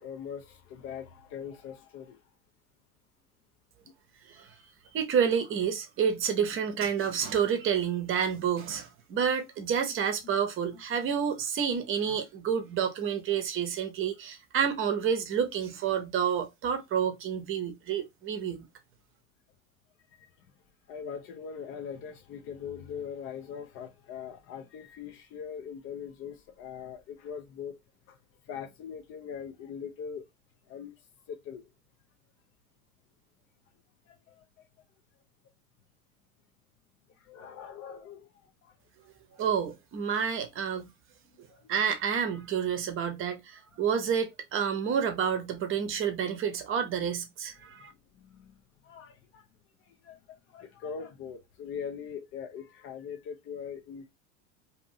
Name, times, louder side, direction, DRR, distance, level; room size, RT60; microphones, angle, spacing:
voice 1, 0.0-2.2 3.8-3.9 10.2-10.3 20.2-20.5 20.9-27.8 28.1-28.2 28.4-30.3 30.7-31.7 34.1-34.6 37.1-38.7 41.3-41.7 47.9-48.5 48.8-49.5 49.8-54.1, left 7 dB, 30° left, 0.5 m, -42 dB
voice 2, 4.9-18.7 39.4-40.9 41.4-47.9, right 7 dB, 30° right, 0.8 m, -29 dB
2.7 x 2.6 x 2.6 m
hypercardioid pair, 90°, 44 cm